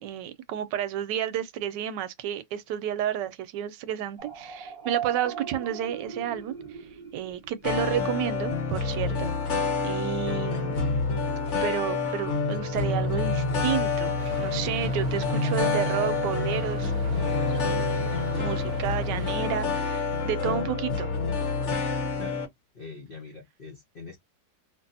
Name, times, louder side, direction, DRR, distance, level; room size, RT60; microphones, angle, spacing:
voice 1, 0.0-6.6 7.1-9.6 9.8-11.0 11.6-16.9 17.7-21.1, right 10 dB, 85° right, 1.2 m, -31 dB
sound 1, 4.2-7.9, right 7 dB, 40° right, 1.1 m, -38 dB
sound 2, 7.6-22.5, left 4 dB, 50° left, 1.0 m, -27 dB
sound 3, 14.2-19.4, right 9 dB, 70° right, 1.0 m, -41 dB
voice 2, 22.7-24.2, left 4 dB, 75° left, 0.5 m, -43 dB
2.9 x 2.6 x 2.6 m
omnidirectional pair, 1.9 m